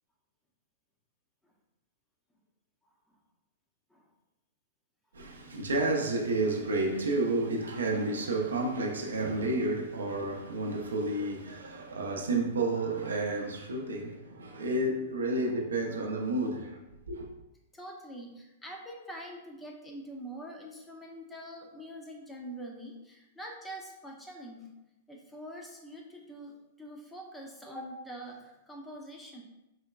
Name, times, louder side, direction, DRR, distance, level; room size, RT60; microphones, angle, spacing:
voice 1, 5.1-16.8 17.1-17.3, right 2 dB, 80° right, 0.4 m, -31 dB
voice 2, 17.7-24.7 25.1-29.4, right 1 dB, 10° left, 0.5 m, -44 dB
3.9 x 2.1 x 2.2 m
hypercardioid pair, 110°, 0 cm